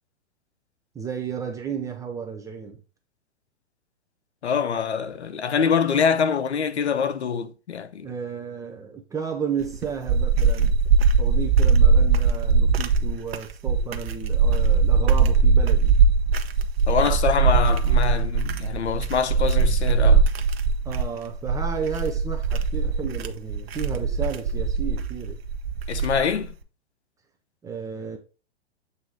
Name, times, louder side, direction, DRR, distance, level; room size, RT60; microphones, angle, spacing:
voice 1, 0.9-2.8 8.0-10.8 11.2-16.0 20.8-25.4 27.6-28.2, right 6 dB, 10° right, 0.5 m, -33 dB
voice 2, 4.4-8.1 16.9-20.3 25.9-26.5, left 6 dB, 80° left, 0.7 m, -24 dB
sound 1, 9.6-26.5, right 5 dB, 65° right, 0.9 m, -20 dB
7.9 x 2.7 x 4.7 m
figure-of-eight pair, 110°, 33 cm